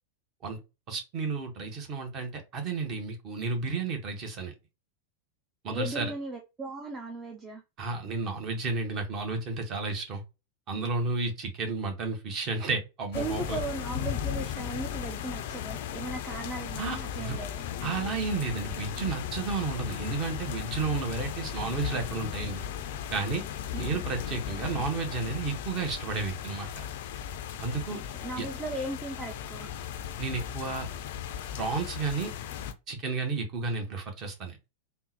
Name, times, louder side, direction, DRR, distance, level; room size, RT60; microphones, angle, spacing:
voice 1, 0.9-4.5 5.6-6.1 7.8-10.2 10.7-13.6 16.8-17.4 17.8-22.6 23.1-23.4 23.7-26.9 27.6-28.0 28.4-28.5 30.2-30.9 31.6-32.3 32.9-34.6, right 4 dB, 35° right, 0.9 m, -32 dB
voice 2, 5.7-7.6 13.1-17.6 24.7-24.8 27.9-29.7, right 2 dB, 20° right, 0.4 m, -37 dB
sound 1, 13.1-32.7, left 9 dB, 50° left, 0.4 m, -36 dB
3.6 x 2.1 x 2.7 m
figure-of-eight pair, 90°, 0 cm